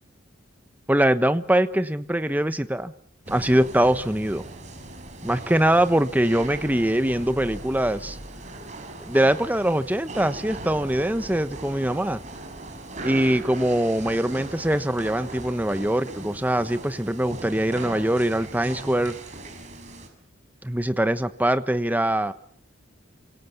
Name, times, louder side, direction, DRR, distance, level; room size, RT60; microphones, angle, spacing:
voice 1, 0.9-2.9 3.3-4.4 5.2-8.2 9.1-12.2 13.0-19.2 20.6-22.3, right 1 dB, 10° right, 11 dB, 1.1 m, -23 dB
sound 1, 3.3-20.1, right 2 dB, 40° right, 6.0 m, -39 dB
28.5 x 25.5 x 7.2 m, 0.63 s
head